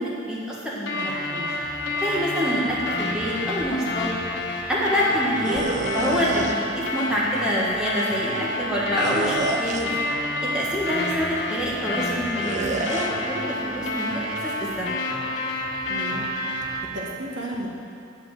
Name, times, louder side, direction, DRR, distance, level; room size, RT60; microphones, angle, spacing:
voice 1, 0.0-1.5 2.0-4.1 4.7-5.6 5.9-9.9 10.4-14.9, equal, 5° right, -7 dB, 1.6 m, -26 dB
sound 1, 0.9-16.8, left 1 dB, 70° left, 1.7 m, -29 dB
voice 2, 5.2-5.6 15.9-16.3 16.9-17.7, right 1 dB, 75° right, -2 dB, 1.5 m, -34 dB
sound 2, 5.4-6.5 9.0-10.0 12.4-13.1, right 2 dB, 40° right, 0.6 m, -28 dB
10.0 x 5.2 x 7.5 m, 2.6 s
head